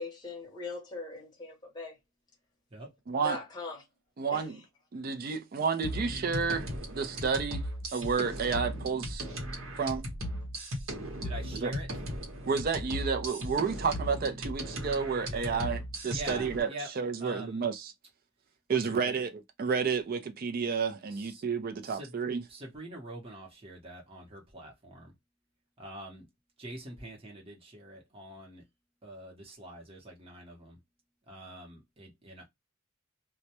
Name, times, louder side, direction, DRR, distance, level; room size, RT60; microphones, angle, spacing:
voice 1, 0.0-2.0 3.2-3.8 4.3-4.5, left 3 dB, 20° left, 0.7 m, -40 dB
voice 2, 3.1-3.4 4.2-4.6 4.9-9.2 9.8-10.1 11.5-11.7 12.5-16.7 17.0-17.9 18.7-22.4, right 5 dB, 45° right, 0.4 m, -31 dB
sound 1, 5.8-16.6, equal, 75° right, 0.9 m, -37 dB
voice 3, 11.2-11.9 15.3-15.8 16.1-16.9 17.2-17.7 18.7-19.2 21.1-21.4 21.8-22.2 22.5-25.1 25.8-26.3 26.6-28.6 29.0-30.8 31.3-32.5, right 1 dB, 25° right, 0.8 m, -45 dB
2.1 x 2.1 x 2.7 m
head